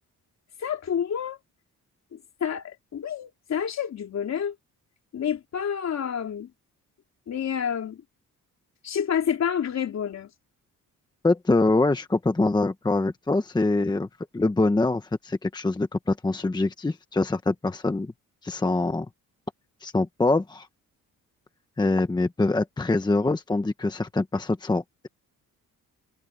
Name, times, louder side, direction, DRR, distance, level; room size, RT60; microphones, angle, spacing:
voice 1, 0.6-1.4 2.1-4.6 5.1-6.5 7.3-8.0 8.8-10.3, left 8 dB, 55° left, 3.6 m, -29 dB
voice 2, 11.2-14.1 14.3-18.1 18.4-19.1 19.8-20.7 21.8-25.1, left 2 dB, 15° left, 1.1 m, -24 dB
cardioid pair, 145°, 33 cm